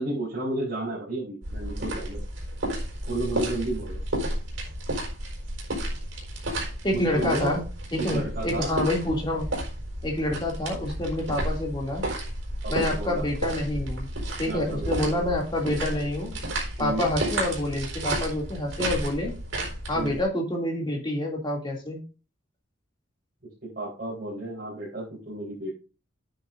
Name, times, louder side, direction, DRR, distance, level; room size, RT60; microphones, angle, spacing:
voice 1, 0.0-2.2 3.1-4.0 6.9-7.6 8.0-8.7 12.6-13.2 14.4-15.3 16.8-17.1 19.9-20.2 23.6-25.7, right 2 dB, 50° right, -8 dB, 4.4 m, -32 dB
sound 1, 1.4-20.2, right 1 dB, 75° right, 4.5 m, -32 dB
voice 2, 6.8-7.6 7.9-9.5 10.0-12.0 12.7-14.1 14.4-16.3 16.8-19.4 19.9-22.0, left 1 dB, 25° left, -1 dB, 2.7 m, -27 dB
10.5 x 9.8 x 2.7 m, 0.33 s
head